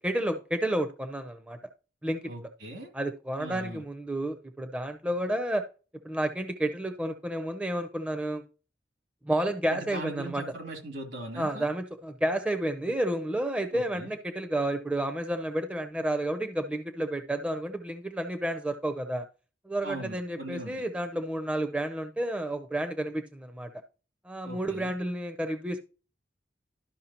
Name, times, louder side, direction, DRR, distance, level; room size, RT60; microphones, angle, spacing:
voice 1, 0.0-1.6 2.0-2.5 2.9-5.6 6.0-8.4 9.2-10.4 11.4-19.2 19.6-23.7 24.2-25.8, right 1 dB, 5° right, 7 dB, 0.5 m, -31 dB
voice 2, 2.3-2.9 3.4-3.8 9.7-11.7 13.7-14.1 19.8-20.8 24.4-24.9, right 2 dB, 75° right, 3 dB, 2.5 m, -40 dB
12.0 x 5.5 x 2.9 m, 0.34 s
head